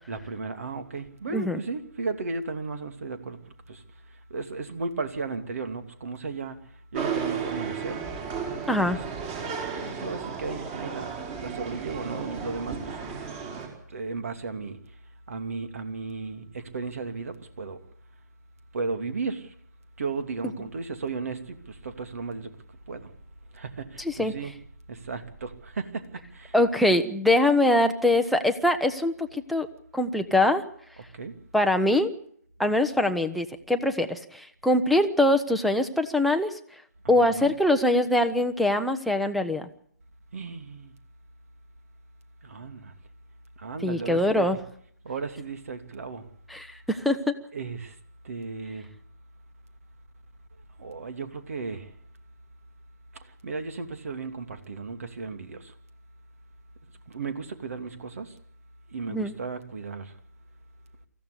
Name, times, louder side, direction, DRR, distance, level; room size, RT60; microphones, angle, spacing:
voice 1, 0.1-3.4 3.7-3.8 4.3-8.0 8.7-9.0 9.8-13.0 13.9-14.8 15.3-17.8 18.7-19.5 20.0-22.5 22.9-23.1 23.5-24.6 24.9-26.0 26.3-26.5 31.1-31.3 37.0-37.5 40.3-40.9 42.4-42.9 43.6-44.6 45.0-46.3 47.5-47.9 48.2-48.9 50.8-51.9 53.4-55.7 57.1-58.3 58.9-60.1, right 4 dB, 55° right, 2.8 m, -35 dB
sound 1, 6.9-13.7, right 6 dB, 25° right, 5.1 m, -34 dB
voice 2, 8.7-9.0 24.0-24.3 26.5-29.7 29.9-30.6 31.5-32.1 32.6-36.5 37.1-39.7 43.8-44.6 46.5-47.3 59.1-59.3, left 1 dB, ahead, 0.9 m, -23 dB
24.5 x 15.0 x 8.3 m
figure-of-eight pair, 140°, 9 cm